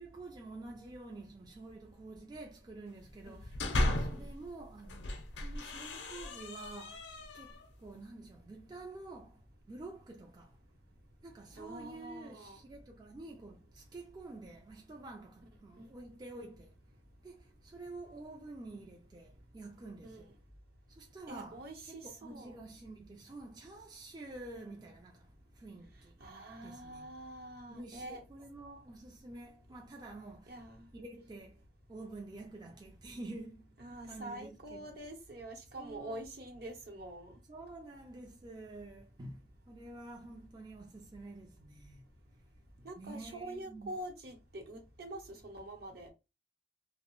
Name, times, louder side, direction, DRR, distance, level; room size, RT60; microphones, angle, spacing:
voice 1, 0.0-10.6 11.2-16.8 17.2-20.4 20.9-26.2 26.6-27.1 27.7-30.6 30.9-31.6 31.9-33.7 34.0-34.9 35.7-36.2 37.5-42.0 42.8-43.9, right 2 dB, 25° right, 0.3 m, -49 dB
sound 1, 3.2-4.3 4.8-7.7, left 1 dB, 75° left, 0.5 m, -36 dB
voice 2, 11.6-12.6 15.8-15.9 20.0-20.3 21.3-22.5 26.2-28.2 30.5-30.9 33.8-37.4 42.8-46.1, right 1 dB, 60° right, 0.8 m, -46 dB
2.7 x 2.0 x 2.9 m
head